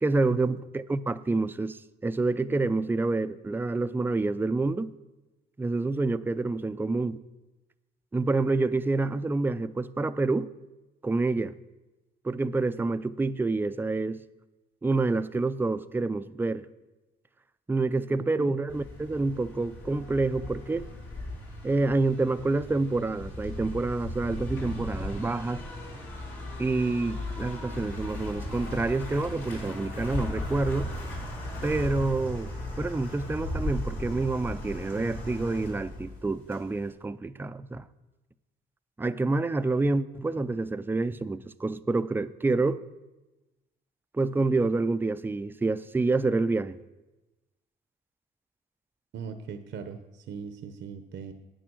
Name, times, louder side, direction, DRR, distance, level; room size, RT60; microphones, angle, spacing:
voice 1, 0.0-4.9 5.6-7.2 8.1-10.5 11.0-11.5 12.2-14.2 14.8-16.7 17.7-20.9 21.6-25.6 26.6-30.9 31.6-32.5 32.8-37.9 39.0-42.8 44.1-46.8, right 3 dB, 10° right, 0.4 m, -28 dB
voice 2, 18.2-18.6 49.1-51.3, right 6 dB, 65° right, 0.8 m, -39 dB
sound 1, 18.7-36.9, left 1 dB, 85° left, 3.8 m, -37 dB
8.9 x 8.9 x 6.2 m
cardioid pair, 90°, 20 cm